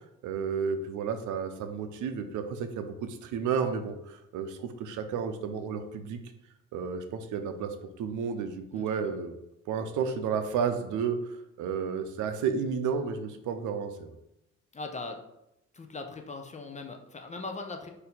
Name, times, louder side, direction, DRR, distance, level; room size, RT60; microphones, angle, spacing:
voice 1, 0.2-6.2 6.7-9.3 9.7-14.1, right 6 dB, 80° right, 8 dB, 0.6 m, -32 dB
voice 2, 8.7-9.1 14.7-15.2 15.7-17.9, left 3 dB, 25° left, 4 dB, 0.6 m, -40 dB
4.3 x 2.7 x 3.8 m, 0.84 s
cardioid pair, 90°, 30 cm